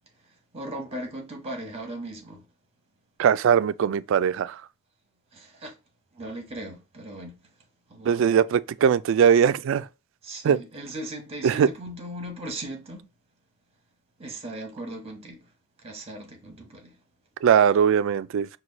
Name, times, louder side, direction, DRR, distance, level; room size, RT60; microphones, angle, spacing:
voice 1, 0.5-2.5 5.3-5.8 6.1-7.5 7.9-8.3 10.2-13.1 14.2-15.4 15.8-17.0, right 1 dB, 30° right, 1.3 m, -38 dB
voice 2, 3.2-4.6 8.1-9.9 10.4-10.6 11.4-11.7 17.4-18.5, right 8 dB, 65° right, 0.3 m, -20 dB
4.6 x 2.3 x 3.9 m
head